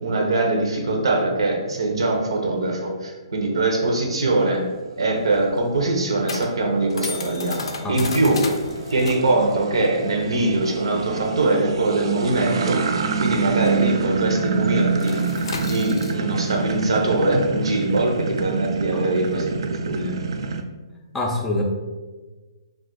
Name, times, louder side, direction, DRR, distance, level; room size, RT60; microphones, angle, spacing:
voice 1, 0.0-4.6 5.0-8.6 8.9-15.1 15.6-19.5 19.8-20.1, right 2 dB, 80° right, 1 dB, 0.7 m, -22 dB
sound 1, 4.5-20.6, right 5 dB, 65° right, 0.3 m, -27 dB
sound 2, 4.7-13.7 14.0-14.2 14.5-20.3, left 3 dB, 75° left, 0.5 m, -35 dB
voice 2, 21.1-21.6, left 1 dB, 10° left, -1 dB, 0.4 m, -25 dB
2.4 x 2.4 x 3.8 m, 1.3 s
hypercardioid pair, 150°, 3 cm